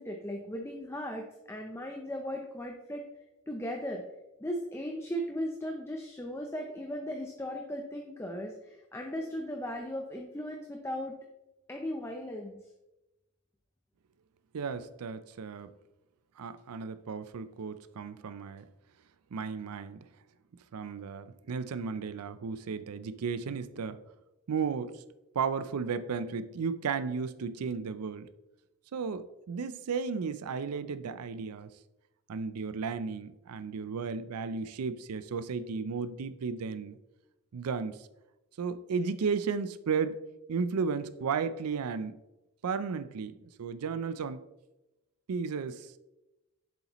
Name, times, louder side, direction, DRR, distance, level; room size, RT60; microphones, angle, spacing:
voice 1, 0.0-3.0 3.5-4.0 4.4-11.2 11.7-12.6, equal, 10° left, 0.5 m, -37 dB
voice 2, 14.5-15.7 16.4-18.6 19.3-20.1 20.7-24.0 24.5-25.0 25.3-28.3 28.9-31.7 32.3-37.0 37.5-38.1 38.6-40.2 40.5-42.2 42.6-44.4 45.3-46.0, right 5 dB, 90° right, 0.4 m, -34 dB
8.0 x 7.0 x 3.0 m
head